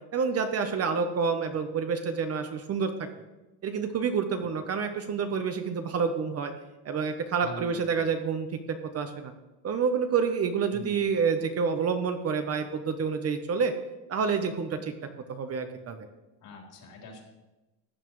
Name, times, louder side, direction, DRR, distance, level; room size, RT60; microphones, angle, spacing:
voice 1, 0.1-2.9 3.6-6.5 6.8-8.5 8.9-9.3 9.6-13.7 14.1-14.9 15.3-16.1, right 6 dB, 35° right, 7 dB, 0.8 m, -28 dB
voice 2, 7.4-7.8 10.7-11.1 16.4-17.2, left 2 dB, 60° left, -1 dB, 3.7 m, -43 dB
15.0 x 9.1 x 3.1 m, 1.0 s
cardioid pair, 145°, 42 cm